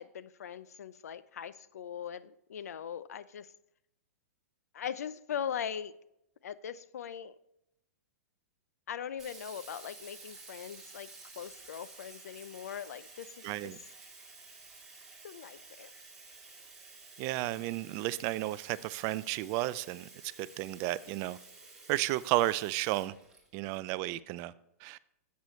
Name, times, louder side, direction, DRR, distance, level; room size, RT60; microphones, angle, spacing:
voice 1, 0.0-3.5 4.7-6.0 6.4-7.3 8.9-11.1 11.4-13.3 13.6-13.7 15.2-15.9, left 8 dB, 80° left, 0.6 m, -40 dB
Sink (filling or washing), 9.2-23.9, right 3 dB, 5° right, 2.8 m, -52 dB
voice 2, 13.4-13.8 17.2-20.1 20.4-21.4 21.9-23.1 23.5-24.5 24.8-25.0, right 17 dB, 35° right, 0.4 m, -32 dB
10.5 x 8.3 x 3.1 m
hypercardioid pair, 140°, 8 cm